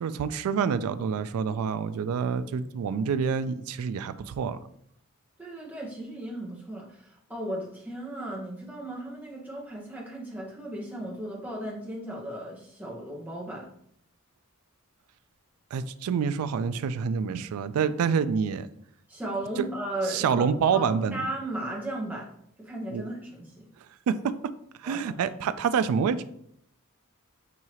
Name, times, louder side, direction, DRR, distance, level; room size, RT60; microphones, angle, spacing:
voice 1, 0.0-4.6 15.7-18.7 19.6-19.7 20.1-21.3 22.9-23.0 24.1-24.3 24.8-26.2, right 6 dB, 85° right, 13 dB, 0.3 m, -27 dB
voice 2, 5.4-13.7 19.1-20.4 20.7-22.3 22.6-23.7 24.8-25.3, right 1 dB, 10° right, -3 dB, 0.9 m, -36 dB
6.2 x 2.7 x 2.9 m, 0.70 s
head